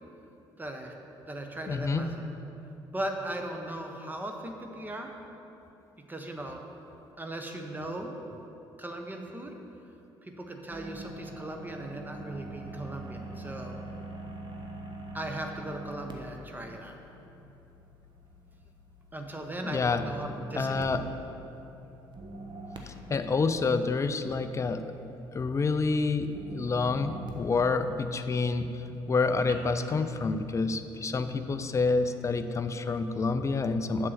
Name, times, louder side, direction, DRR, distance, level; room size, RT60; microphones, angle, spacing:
voice 1, 0.6-0.9 1.2-2.2 2.9-5.1 6.1-6.6 7.2-8.1 8.8-9.5 10.2-13.8 15.1-17.0 19.1-21.0, right 1 dB, 15° right, 3 dB, 1.1 m, -38 dB
voice 2, 1.7-2.1 19.6-20.0 20.6-21.0 22.9-24.9 25.3-28.7 29.1-34.1, left 4 dB, 25° left, 10 dB, 0.5 m, -28 dB
sound 1, 10.7-30.1, right 2 dB, 40° right, 1.0 m, -45 dB
7.4 x 6.6 x 5.9 m, 2.9 s
figure-of-eight pair, 50°, 12 cm